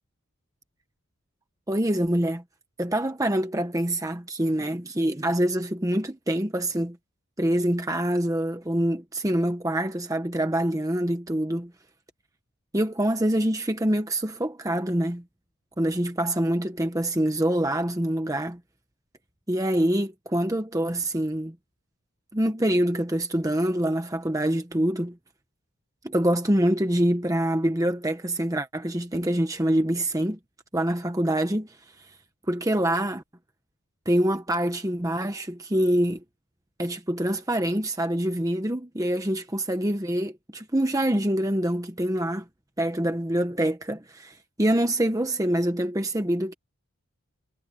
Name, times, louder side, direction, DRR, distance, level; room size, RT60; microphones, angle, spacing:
voice 1, 1.7-2.4 2.8-7.0 7.4-11.7 12.7-15.2 15.8-18.6 19.5-21.5 22.3-25.2 26.0-30.4 30.7-32.1 32.5-33.2 34.0-36.2 36.8-42.5 42.8-46.5, right 1 dB, 15° right, 1.1 m, -25 dB
head